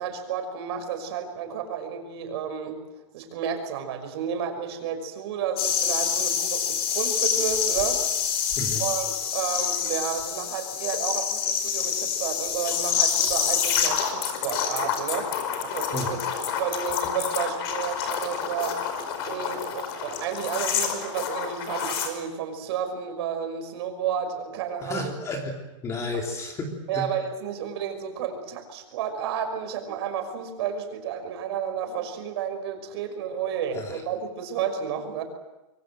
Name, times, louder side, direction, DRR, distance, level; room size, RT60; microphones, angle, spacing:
voice 1, 0.0-2.8 3.1-8.0 8.8-25.1 26.9-35.2, right 7 dB, 50° right, 6 dB, 5.7 m, -31 dB
sound 1, 5.6-22.1, left 7 dB, 50° left, 5.1 m, -27 dB
voice 2, 24.8-25.6 25.8-27.1 33.7-34.0, left 2 dB, 15° left, 2 dB, 3.4 m, -32 dB
26.0 x 24.0 x 7.8 m, 1.0 s
supercardioid pair, 170°, 17 cm